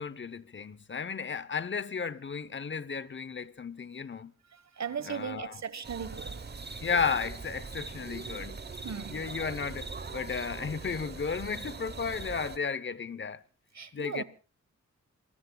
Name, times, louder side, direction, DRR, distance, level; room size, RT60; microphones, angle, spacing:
voice 1, 0.0-4.3 5.1-5.5 6.8-8.6 9.1-13.4 13.9-14.2, left 5 dB, 40° left, 0.9 m, -34 dB
voice 2, 4.5-6.7 8.8-9.3 13.7-14.2, right 7 dB, 65° right, 1.4 m, -38 dB
sound 1, 5.8-12.6, right 4 dB, 35° right, 1.0 m, -41 dB
27.0 x 20.5 x 2.3 m
wide cardioid pair, 95°, 30 cm